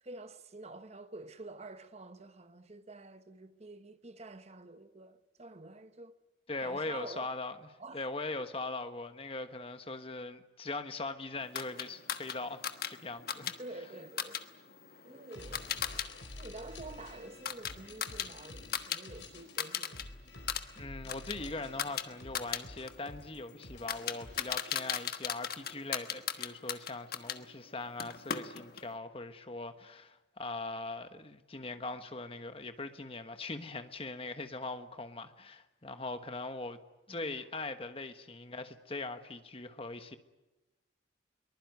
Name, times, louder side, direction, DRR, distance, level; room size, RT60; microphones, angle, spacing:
voice 1, 0.0-6.2 6.6-7.3 7.8-8.0 8.4-8.5 13.5-14.5 15.0-16.1 16.4-20.1 37.1-37.5, right 2 dB, 35° right, 1.1 m, -48 dB
voice 2, 6.5-7.5 7.9-12.6 12.9-13.6 20.8-36.8 37.1-40.2, left 3 dB, 30° left, 1.3 m, -41 dB
sound 1, 11.5-16.1 16.4-19.0 19.3-20.0 20.3-27.4 28.0-28.9, left 8 dB, 55° left, 1.3 m, -38 dB
sound 2, 15.3-24.4, left 2 dB, 85° left, 4.4 m, -49 dB
23.0 x 20.0 x 9.4 m
head